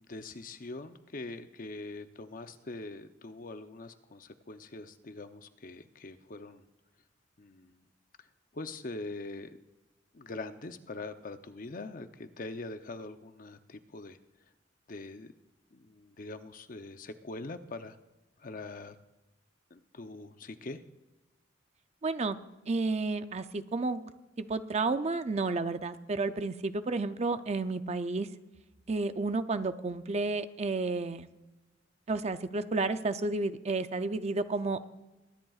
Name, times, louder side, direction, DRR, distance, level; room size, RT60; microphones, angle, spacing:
voice 1, 0.0-6.6 7.4-7.9 8.2-8.3 8.5-9.5 10.1-14.2 14.9-15.3 15.7-18.0 18.4-19.0 19.7-20.8, left 2 dB, 45° left, 9 dB, 0.7 m, -43 dB
voice 2, 22.0-22.4 22.7-24.1 24.4-28.3 28.9-31.3 32.1-34.8, right 3 dB, 35° right, 10 dB, 0.5 m, -31 dB
22.0 x 10.5 x 2.4 m, 1.0 s
head